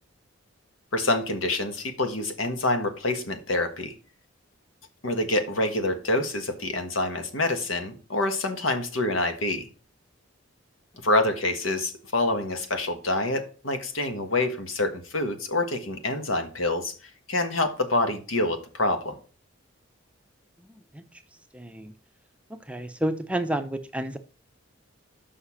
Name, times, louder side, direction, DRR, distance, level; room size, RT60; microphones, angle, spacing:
voice 1, 0.9-3.9 5.0-9.7 11.0-16.9 17.3-19.2, left 2 dB, 80° left, 7 dB, 1.4 m, -26 dB
voice 2, 20.7-21.2 21.5-21.9 22.7-24.2, right 1 dB, 5° right, 8 dB, 0.5 m, -31 dB
6.8 x 5.7 x 5.7 m, 0.37 s
head